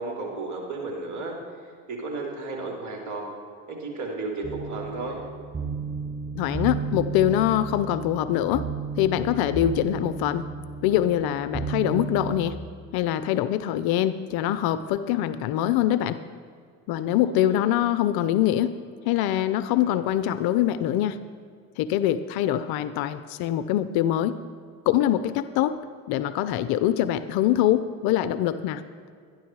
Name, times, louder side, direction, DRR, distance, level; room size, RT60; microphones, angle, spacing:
voice 1, 0.0-3.3 3.7-5.2 17.2-17.6, right 3 dB, 40° right, -1 dB, 3.5 m, -34 dB
sound 1, 4.4-12.5, right 5 dB, 15° right, 0.9 m, -33 dB
voice 2, 6.4-8.7 9.0-10.4 10.8-12.6 12.9-16.2 16.9-18.7 19.1-21.2 21.8-24.4 24.9-25.8 26.1-28.8, left 12 dB, 55° left, 13 dB, 0.6 m, -24 dB
12.5 x 10.5 x 4.7 m, 2.2 s
hypercardioid pair, 75°, 45 cm